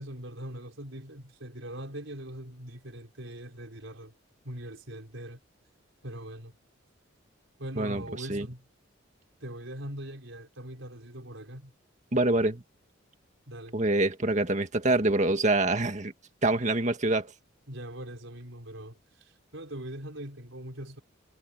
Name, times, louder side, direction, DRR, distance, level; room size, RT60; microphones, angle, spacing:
voice 1, 0.0-4.1 4.4-5.4 6.0-6.6 7.6-8.7 9.4-11.7 13.5-13.8 17.7-21.0, right 1 dB, 75° right, 4.7 m, -41 dB
voice 2, 7.8-8.5 12.1-12.6 13.7-16.1 16.4-17.3, right 2 dB, 40° right, 1.8 m, -26 dB
head